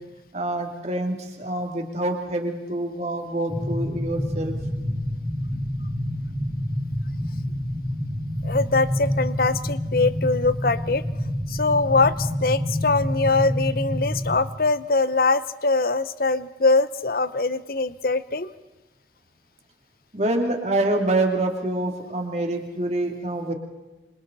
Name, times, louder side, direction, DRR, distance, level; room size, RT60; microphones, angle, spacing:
voice 1, 0.3-4.6 20.1-23.5, right 1 dB, 40° right, 2 dB, 2.9 m, -26 dB
sound 1, 3.5-14.4, equal, 5° right, 4.5 m, -28 dB
voice 2, 8.4-11.0 11.5-18.5, left 3 dB, 55° left, 15 dB, 0.8 m, -22 dB
28.0 x 26.0 x 4.2 m, 1.1 s
head